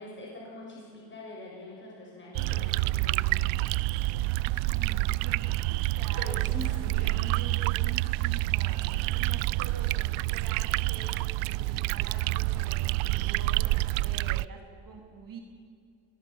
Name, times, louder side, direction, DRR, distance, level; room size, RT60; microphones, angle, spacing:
voice 1, 0.0-3.5 6.2-7.2, left 1 dB, 25° left, -3 dB, 6.8 m, -43 dB
sound 1, 2.3-14.5, right 20 dB, 75° right, 0.5 m, -28 dB
voice 2, 4.4-15.4, right 5 dB, 45° right, 2 dB, 3.3 m, -46 dB
21.5 x 20.0 x 7.2 m, 2.3 s
cardioid pair, 110°, 47 cm